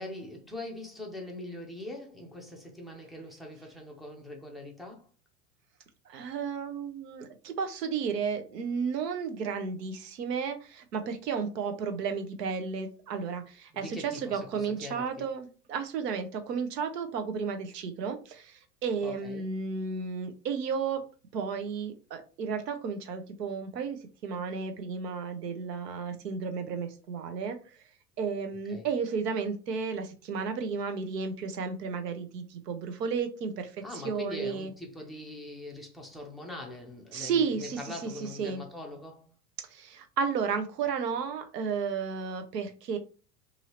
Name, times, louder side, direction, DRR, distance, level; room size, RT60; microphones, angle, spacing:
voice 1, 0.0-5.1 13.7-15.3 19.0-19.5 28.7-28.9 33.8-39.3, left 1 dB, ahead, 0.4 m, -42 dB
voice 2, 6.1-21.0 21.3-27.6 28.2-33.7 34.0-34.7 37.1-38.6 39.7-43.0, right 5 dB, 85° right, 0.8 m, -33 dB
2.7 x 2.7 x 2.9 m
hypercardioid pair, 95°, 48 cm